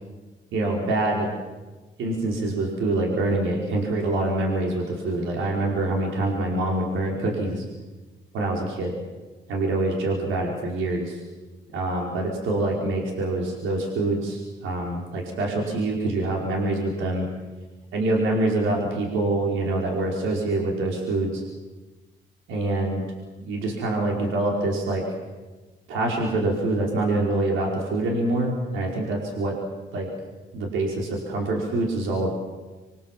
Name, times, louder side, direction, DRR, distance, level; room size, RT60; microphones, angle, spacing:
voice 1, 0.5-1.3 2.0-7.7 8.3-8.9 9.5-11.2 11.7-17.3 17.9-21.4 22.5-23.0 23.4-25.0 25.9-29.5 29.9-30.1 30.5-32.3, right 2 dB, 85° right, -1 dB, 4.9 m, -25 dB
26.5 x 24.0 x 7.5 m, 1.2 s
cardioid pair, 90°, 20 cm